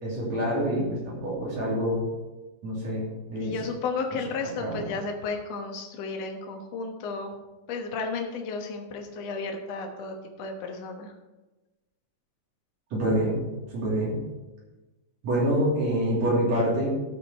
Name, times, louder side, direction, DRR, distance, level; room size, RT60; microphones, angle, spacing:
voice 1, 0.0-2.1 2.6-3.6 4.6-4.9 12.9-13.4 13.7-14.2 15.2-16.9, right 1 dB, 50° right, -5 dB, 3.6 m, -26 dB
voice 2, 3.4-7.3 7.7-11.1, left 4 dB, 60° left, 3 dB, 1.9 m, -33 dB
14.5 x 5.3 x 4.6 m, 1.1 s
omnidirectional pair, 4.2 m